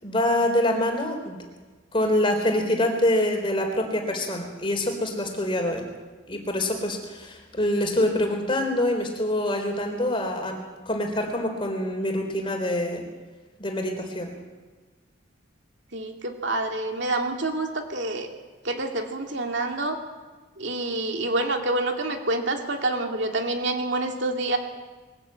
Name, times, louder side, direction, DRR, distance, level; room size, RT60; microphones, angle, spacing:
voice 1, 0.0-1.4 1.9-5.8 6.3-10.6 10.9-13.0 13.6-14.3, left 1 dB, 25° left, 3 dB, 3.8 m, -25 dB
voice 2, 15.9-18.3 18.6-20.0 20.6-24.6, right 2 dB, 60° right, 4 dB, 2.5 m, -27 dB
22.5 x 13.5 x 8.7 m, 1.3 s
head